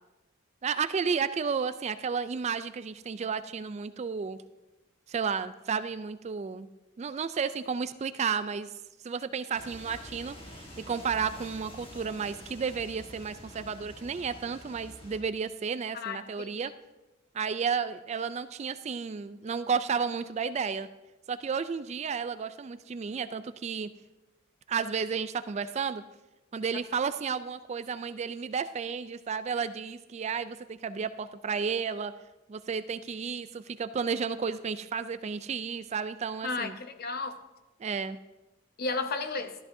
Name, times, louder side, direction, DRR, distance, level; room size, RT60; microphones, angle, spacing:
voice 1, 0.6-4.4 5.1-6.7 7.0-8.7 9.0-10.4 10.9-16.7 17.3-20.9 21.3-23.9 24.7-26.0 26.5-32.1 32.5-36.8 37.8-38.2, right 6 dB, 35° right, 13 dB, 0.3 m, -32 dB
sound 1, 9.5-15.2, left 1 dB, 30° left, 1.5 m, -47 dB
voice 2, 15.9-16.6 36.4-37.4 38.8-39.6, left 3 dB, 50° left, 9 dB, 0.8 m, -33 dB
13.0 x 13.0 x 2.7 m, 1.0 s
head